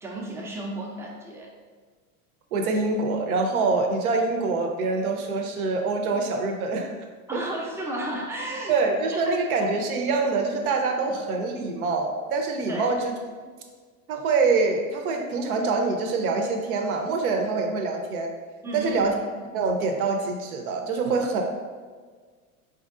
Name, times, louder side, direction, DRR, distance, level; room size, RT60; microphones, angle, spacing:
voice 1, 0.0-1.5 7.3-8.8 9.1-9.4 12.7-12.9 18.6-19.1, right 1 dB, 5° right, -3 dB, 0.3 m, -33 dB
voice 2, 2.5-6.9 8.7-13.1 14.1-18.3 18.7-19.1 19.5-21.4, right 3 dB, 85° right, 2 dB, 0.7 m, -25 dB
4.3 x 2.7 x 2.4 m, 1.5 s
supercardioid pair, 110°, 42 cm